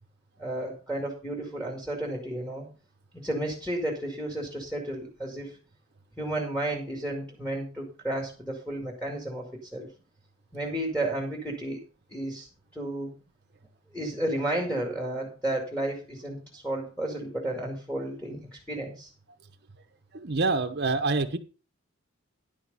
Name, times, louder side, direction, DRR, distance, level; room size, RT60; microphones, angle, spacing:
voice 1, 0.4-2.7 3.1-5.6 6.2-9.9 10.5-11.8 12.1-13.1 13.9-19.1, right 1 dB, 5° left, 1 dB, 2.1 m, -32 dB
voice 2, 20.1-21.4, right 3 dB, 50° right, 5 dB, 1.0 m, -26 dB
11.0 x 6.4 x 5.4 m, 0.35 s
head